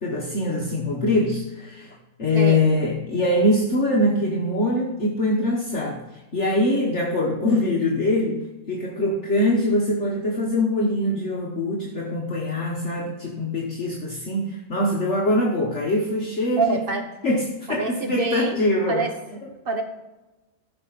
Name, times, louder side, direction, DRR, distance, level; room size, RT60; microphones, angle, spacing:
voice 1, 0.0-16.8 17.2-19.0 19.4-19.5, left 1 dB, 50° left, -2 dB, 1.5 m, -23 dB
voice 2, 2.3-2.7 16.6-17.1 17.7-18.6 18.9-19.1 19.6-19.8, right 3 dB, 40° right, 5 dB, 1.3 m, -26 dB
15.0 x 6.0 x 4.1 m, 1.1 s
omnidirectional pair, 1.6 m